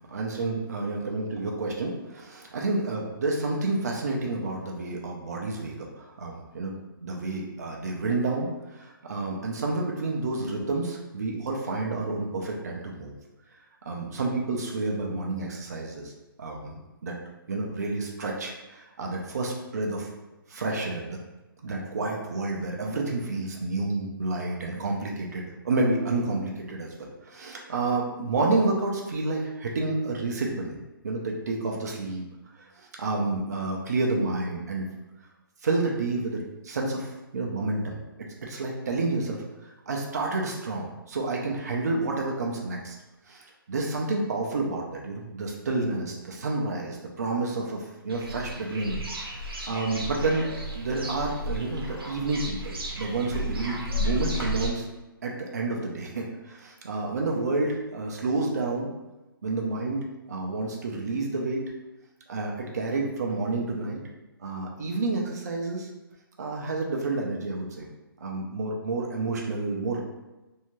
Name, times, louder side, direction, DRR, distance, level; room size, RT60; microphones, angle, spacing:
voice 1, 0.1-6.7 7.0-13.1 13.9-16.1 16.4-16.8 17.0-17.2 17.5-20.1 20.5-21.2 21.6-30.8 31.0-32.2 32.8-34.9 35.6-43.0 43.3-49.0 49.7-50.5 50.7-54.9 55.2-58.9 59.4-61.6 62.3-64.0 64.4-65.9 66.4-67.9 68.2-70.0, right 3 dB, 45° right, -1 dB, 0.4 m, -29 dB
sound 1, 48.1-54.7, equal, 75° right, 0.7 m, -33 dB
2.6 x 2.2 x 2.9 m, 1.1 s
hypercardioid pair, 170°, 12 cm